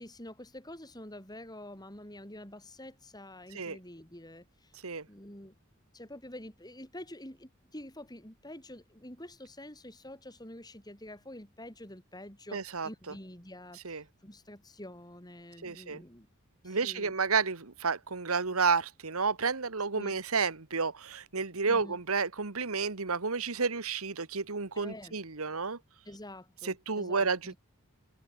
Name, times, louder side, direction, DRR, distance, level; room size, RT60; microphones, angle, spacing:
voice 1, 0.0-4.7 5.1-5.6 5.9-16.3 16.6-17.1 20.0-20.2 21.6-22.0 24.7-25.1 26.0-27.6, left 1 dB, 20° left, 7.4 m, -47 dB
voice 2, 12.5-12.9 13.8-14.0 15.6-16.0 16.6-25.8 26.6-27.5, right 5 dB, 90° right, 1.5 m, -31 dB
head